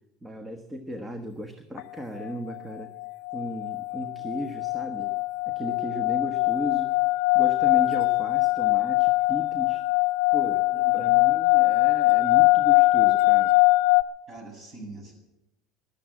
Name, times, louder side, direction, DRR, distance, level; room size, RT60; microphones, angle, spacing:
voice 1, 0.2-2.9 3.3-5.1 5.5-7.0 7.3-9.9 10.3-13.5, equal, 15° right, 7 dB, 1.3 m, -36 dB
sound 1, 1.8-1.9 2.2-2.6 3.0-14.0, left 23 dB, 70° left, 0.5 m, -22 dB
voice 2, 10.7-11.2 14.3-15.1, right 3 dB, 30° right, 1 dB, 8.0 m, -43 dB
14.0 x 11.5 x 8.7 m, 0.93 s
supercardioid pair, 110°, 0 cm